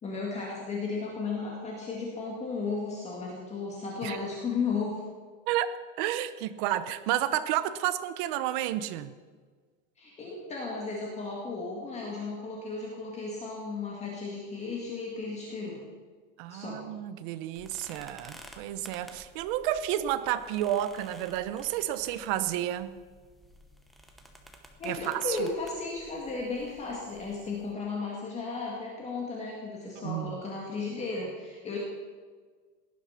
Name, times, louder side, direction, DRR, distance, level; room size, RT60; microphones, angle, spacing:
voice 1, 0.0-5.0 10.0-15.8 16.5-16.8 24.8-31.8, left 4 dB, 15° left, -3 dB, 2.1 m, -35 dB
voice 2, 6.0-9.1 16.4-23.0 24.8-25.4 30.0-30.4, right 12 dB, 40° right, 12 dB, 0.9 m, -31 dB
sound 1, 17.6-27.7, equal, ahead, 0.9 m, -53 dB
18.0 x 11.0 x 5.8 m, 1.5 s
supercardioid pair, 170°, 40 cm